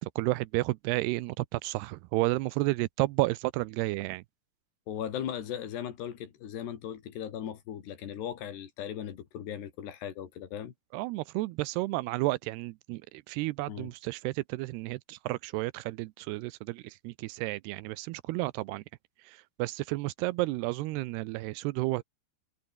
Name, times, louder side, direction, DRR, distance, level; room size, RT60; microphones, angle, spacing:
voice 1, 0.0-4.2 10.9-18.8 19.2-22.0, right 20 dB, 85° right, 2.7 m, -32 dB
voice 2, 4.9-10.7 13.7-13.9, left 9 dB, 85° left, 4.7 m, -38 dB
omnidirectional pair, 4.7 m